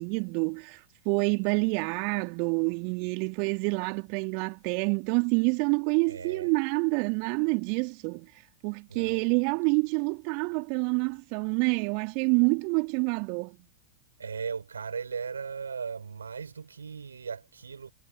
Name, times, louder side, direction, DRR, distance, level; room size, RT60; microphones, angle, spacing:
voice 1, 0.0-8.3 8.6-13.6, right 40 dB or more, 45° right, 3.2 m, -27 dB
voice 2, 6.1-6.5 8.9-9.2 14.2-17.9, right 6 dB, 70° right, 6.9 m, -37 dB
figure-of-eight pair, 90°, 0 cm